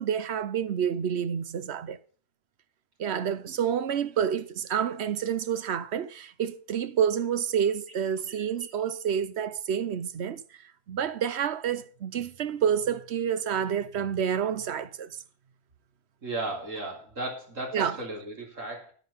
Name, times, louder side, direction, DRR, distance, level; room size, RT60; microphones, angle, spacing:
voice 1, 0.0-2.0 3.0-10.4 10.9-15.2 17.7-18.0, right 8 dB, 60° right, 1.0 m, -28 dB
voice 2, 16.2-18.9, right 2 dB, 85° right, 3.7 m, -35 dB
11.0 x 10.0 x 5.5 m
omnidirectional pair, 1.3 m